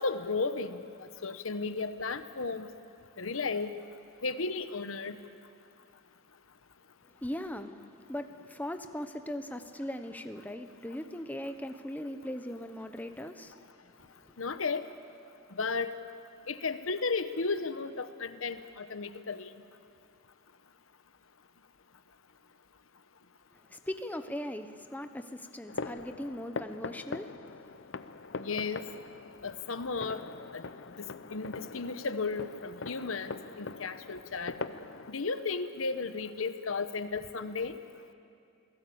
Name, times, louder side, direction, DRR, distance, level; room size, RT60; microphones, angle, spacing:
voice 1, 0.0-2.7 3.2-3.7 4.2-5.2 14.4-14.8 15.5-15.9 16.5-19.5 28.4-28.8 29.4-30.2 30.5-30.6 31.3-34.6 35.1-37.8, left 4 dB, 80° left, 11 dB, 1.1 m, -34 dB
voice 2, 7.0-7.8 8.1-13.6 14.2-14.3 23.5-27.3 27.9-28.0, left 1 dB, 10° left, 7 dB, 0.9 m, -39 dB
sound 1, 25.7-35.1, left 4 dB, 60° left, 0.7 m, -42 dB
27.5 x 17.5 x 8.6 m, 2.5 s
head